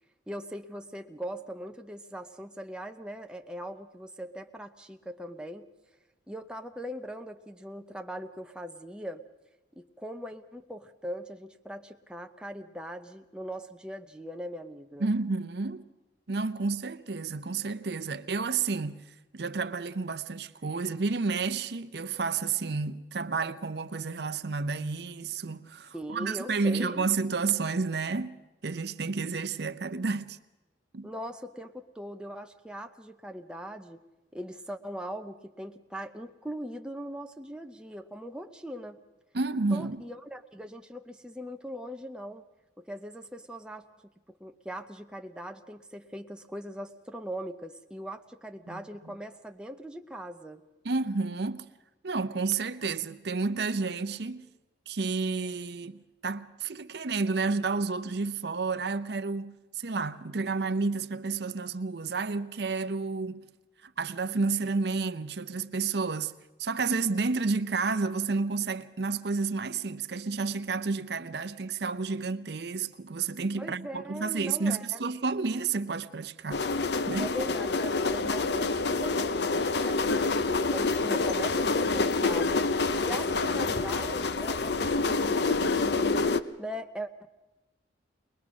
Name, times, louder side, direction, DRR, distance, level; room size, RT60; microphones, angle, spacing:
voice 1, 0.3-5.7 6.3-9.2 9.8-15.1 25.9-27.1 31.0-34.0 34.3-39.0 39.7-42.4 42.8-43.8 44.3-50.6 73.6-75.0 77.2-82.7 83.0-86.2 86.6-87.3, equal, 5° right, 0.7 m, -40 dB
voice 2, 15.0-15.8 16.3-30.4 30.9-31.1 39.3-40.0 48.7-48.8 50.8-51.7 52.0-54.5 54.9-63.5 63.8-66.3 66.6-76.6 77.1-77.3, right 4 dB, 60° right, 0.7 m, -31 dB
sound 1, 76.5-86.4, left 3 dB, 60° left, 0.7 m, -27 dB
21.5 x 21.0 x 6.2 m
head